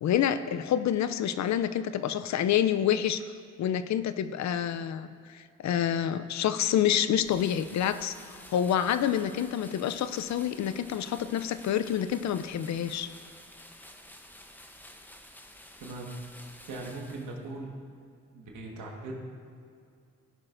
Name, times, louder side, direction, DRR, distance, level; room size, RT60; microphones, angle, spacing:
voice 1, 0.0-3.2 3.6-13.1, left 10 dB, 65° left, 12 dB, 0.5 m, -28 dB
sound 1, 7.1-17.6, left 1 dB, 5° left, 0.8 m, -51 dB
voice 2, 15.8-16.1 16.7-17.7 18.3-19.1, right 2 dB, 90° right, -1 dB, 1.6 m, -39 dB
16.0 x 6.0 x 2.6 m, 2.4 s
supercardioid pair, 55°, 30 cm